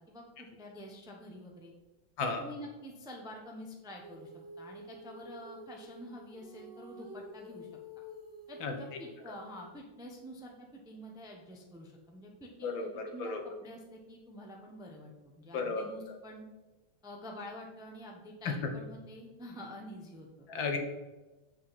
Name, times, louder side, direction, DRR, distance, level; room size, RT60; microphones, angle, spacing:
voice 1, 0.0-1.7 2.2-4.3 4.6-7.7 8.5-15.1 15.4-16.5 17.0-20.4, equal, 5° right, 0 dB, 0.6 m, -48 dB
Female singing, 4.0-9.7, equal, 55° right, 2.4 m, -50 dB
voice 2, 12.6-13.4 15.5-15.9 18.5-18.6 20.5-20.8, left 4 dB, 75° left, 5 dB, 1.7 m, -33 dB
8.1 x 5.9 x 4.2 m, 1.1 s
omnidirectional pair, 2.2 m